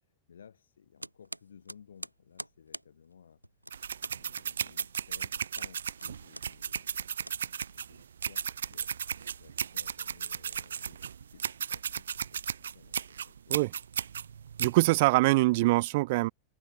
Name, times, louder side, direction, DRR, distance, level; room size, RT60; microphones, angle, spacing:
voice 1, 0.0-3.4 4.0-7.2 7.4-13.6 14.4-14.5, left 7 dB, 70° left, 5.6 m, -58 dB
sound 1, 1.0-8.2, right 1 dB, 90° right, 0.9 m, -46 dB
sound 2, 3.7-14.8, right 8 dB, 70° right, 1.9 m, -35 dB
voice 2, 14.6-16.3, right 21 dB, 50° right, 0.8 m, -23 dB
open air
figure-of-eight pair, 90°, 0 cm